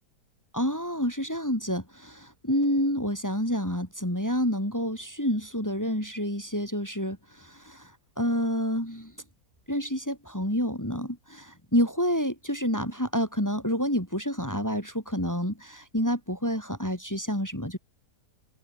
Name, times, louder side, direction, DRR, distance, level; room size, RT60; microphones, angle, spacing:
voice 1, 0.5-7.9 8.2-9.1 9.7-17.8, equal, 10° left, 4.5 m, -28 dB
omnidirectional pair, 1.8 m